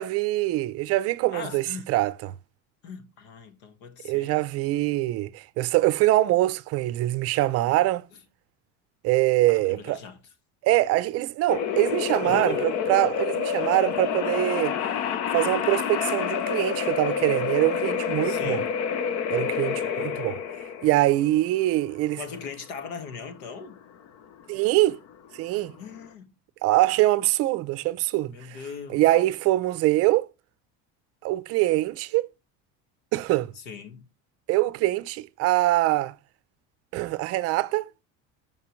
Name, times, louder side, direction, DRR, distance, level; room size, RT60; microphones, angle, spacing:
voice 1, 0.0-2.3 4.0-8.1 9.0-10.0 10.6-14.7 15.3-18.6 19.3-20.4 20.8-22.2 24.5-25.0 25.3-25.7 26.6-28.6 28.9-30.3 31.2-32.3 33.1-33.5 34.5-36.1 36.9-37.8, right 17 dB, 45° right, 0.6 m, -23 dB
voice 2, 1.3-1.9 2.8-4.4 9.5-10.2 12.2-12.8 18.2-18.8 22.2-23.8 25.8-26.3 28.3-29.0 33.6-34.0, left 5 dB, 85° left, 1.7 m, -39 dB
sound 1, 11.5-26.0, left 7 dB, 50° left, 0.8 m, -28 dB
14.5 x 5.3 x 3.1 m
cardioid pair, 175°, 34 cm